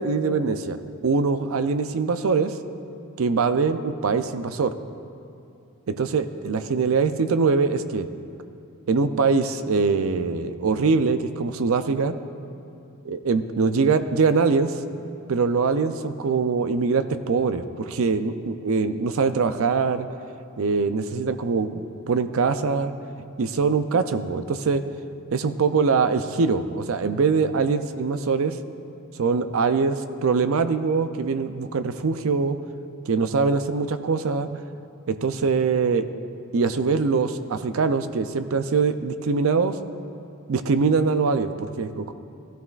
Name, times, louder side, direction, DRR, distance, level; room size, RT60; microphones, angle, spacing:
voice 1, 0.0-2.5 3.2-4.7 5.9-8.1 8.9-12.1 13.0-14.8 15.3-20.1 20.6-22.9 23.4-24.8 25.3-28.6 29.2-32.6 33.1-34.5 35.1-36.1 36.5-39.8 40.5-42.1, right 4 dB, 70° right, 10 dB, 0.5 m, -23 dB
17.0 x 12.5 x 2.4 m, 2.6 s
head